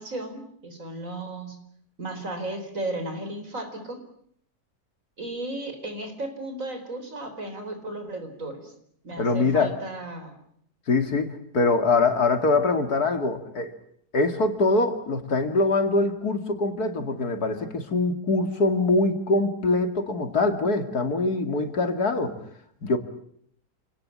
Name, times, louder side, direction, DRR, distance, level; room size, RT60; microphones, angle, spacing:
voice 1, 0.0-1.6 2.0-4.0 5.2-8.7 9.0-10.4, right 2 dB, 55° right, 7 dB, 4.8 m, -34 dB
voice 2, 9.2-9.7 10.9-13.7 14.1-22.4 22.8-23.0, left 3 dB, 75° left, 8 dB, 2.9 m, -23 dB
28.5 x 18.0 x 9.8 m, 0.67 s
omnidirectional pair, 1.7 m